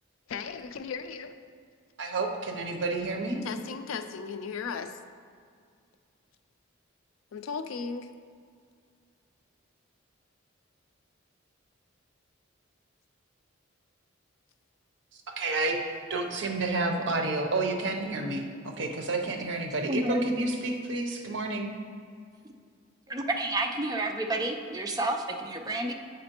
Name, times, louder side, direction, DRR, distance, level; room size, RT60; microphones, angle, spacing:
voice 1, 0.3-1.3 3.4-4.9 7.3-8.1, left 5 dB, 85° left, 9 dB, 0.4 m, -36 dB
voice 2, 2.0-3.4 15.3-15.8 16.1-21.7, right 2 dB, 60° right, 3 dB, 0.6 m, -30 dB
voice 3, 19.9-20.2 23.1-25.9, right 1 dB, 20° right, 3 dB, 0.4 m, -30 dB
7.6 x 5.1 x 2.9 m, 2.2 s
head